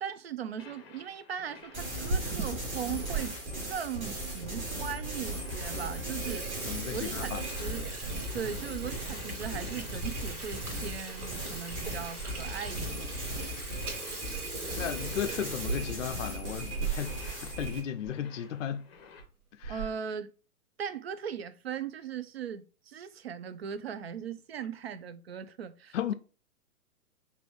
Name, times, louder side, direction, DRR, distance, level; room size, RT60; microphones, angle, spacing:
voice 1, 0.0-3.4 3.6-6.5 6.9-7.3 7.6-7.9 8.3-13.2 19.7-20.3 20.8-26.1, right 8 dB, 45° right, 0.5 m, -39 dB
sound 1, 0.6-19.2, left 5 dB, 20° left, 0.7 m, -53 dB
sound 2, 1.7-17.8, right 1 dB, 20° right, 1.1 m, -37 dB
Water tap faucet / Sink (filling or washing), 2.0-3.2 3.7-3.8 4.5-4.6 5.0-5.1 5.5-5.7 6.0-17.4 17.7-17.8 18.0-18.2 19.0-19.2 19.6-20.1, right 4 dB, 80° right, 1.3 m, -39 dB
voice 2, 6.7-7.4 14.8-18.9 19.5-19.9 25.9-26.1, left 9 dB, 55° left, 0.5 m, -35 dB
5.1 x 2.7 x 3.2 m
figure-of-eight pair, 120°, 44 cm